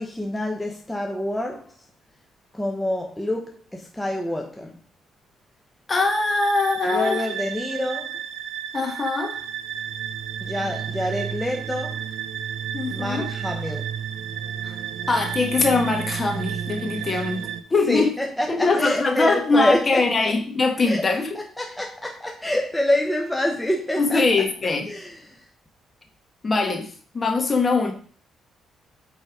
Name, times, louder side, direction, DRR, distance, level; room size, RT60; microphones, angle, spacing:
voice 1, 0.0-1.7 2.5-4.7 6.9-8.2 10.4-12.0 12.9-13.9 17.0-17.2 17.9-20.0 20.9-21.0 21.3-24.2 24.9-25.4, left 1 dB, 10° left, 1 dB, 1.2 m, -26 dB
voice 2, 5.9-7.3 8.7-9.4 12.7-13.3 14.6-14.8 15.1-18.1 18.5-21.3 24.0-24.9 26.4-27.9, left 3 dB, 35° left, 5 dB, 1.8 m, -22 dB
sound 1, 6.0-17.6, right 9 dB, 85° right, 0.6 m, -32 dB
8.5 x 4.1 x 5.1 m, 0.43 s
cardioid pair, 90°, 0 cm